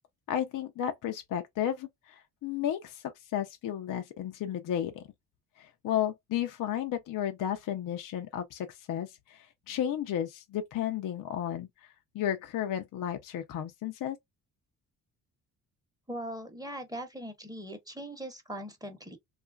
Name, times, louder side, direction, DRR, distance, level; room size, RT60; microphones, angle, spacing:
voice 1, 0.3-5.0 5.6-11.7 12.1-14.2, left 10 dB, 60° left, 0.6 m, -33 dB
voice 2, 16.1-19.2, right 1 dB, 10° right, 0.9 m, -40 dB
2.9 x 2.5 x 2.2 m
cardioid pair, 95°, 37 cm